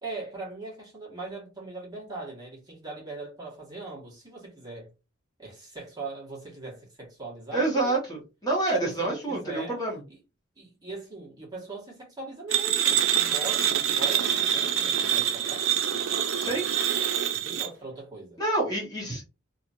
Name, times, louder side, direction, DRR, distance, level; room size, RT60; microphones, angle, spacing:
voice 1, 0.0-4.9 5.4-8.0 8.7-9.8 10.1-10.2 10.6-16.0 16.4-16.6 17.3-18.4, right 3 dB, 20° right, 1.4 m, -40 dB
voice 2, 7.5-10.0 16.4-16.6 18.4-19.2, right 2 dB, 20° left, 1.2 m, -27 dB
sound 1, 12.5-17.7, right 9 dB, 90° right, 0.4 m, -25 dB
3.0 x 2.6 x 2.6 m
head